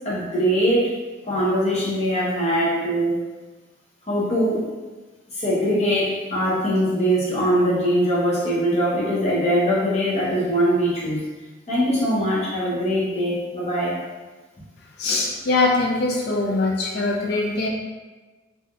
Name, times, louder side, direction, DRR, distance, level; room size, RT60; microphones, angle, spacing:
voice 1, 0.0-0.9 1.2-3.1 4.1-4.6 5.3-11.2 11.7-14.0, equal, 35° left, -7 dB, 0.8 m, -22 dB
voice 2, 15.0-17.7, left 3 dB, 55° left, -1 dB, 0.4 m, -22 dB
3.2 x 2.6 x 2.4 m, 1.2 s
head